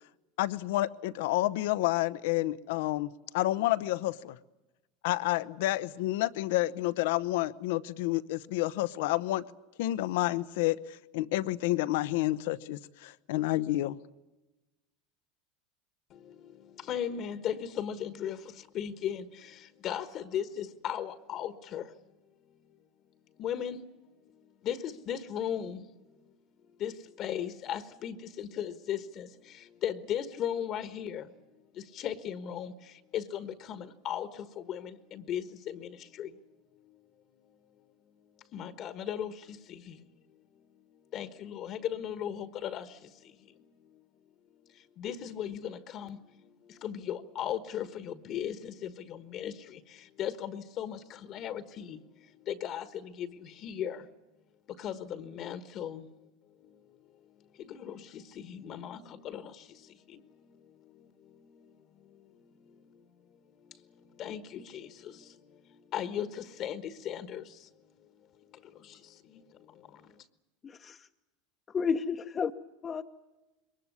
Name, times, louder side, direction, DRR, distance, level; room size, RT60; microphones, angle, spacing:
voice 1, 0.4-4.4 5.0-9.4 9.8-14.0, left 16 dB, 75° left, 0.8 m, -29 dB
voice 2, 16.1-21.9 23.4-23.8 24.3-25.9 26.1-26.2 26.8-31.3 31.7-36.5 36.8-37.0 38.5-40.1 41.1-44.0 44.7-54.1 54.8-56.1 56.6-56.8 57.6-61.8 62.0-63.0 63.6-68.1 68.3-70.2, left 9 dB, 50° left, 1.4 m, -38 dB
voice 3, 70.6-71.1 71.7-72.5 72.8-73.0, left 6 dB, 30° left, 0.9 m, -31 dB
22.5 x 20.0 x 9.6 m
hypercardioid pair, 95°, 0 cm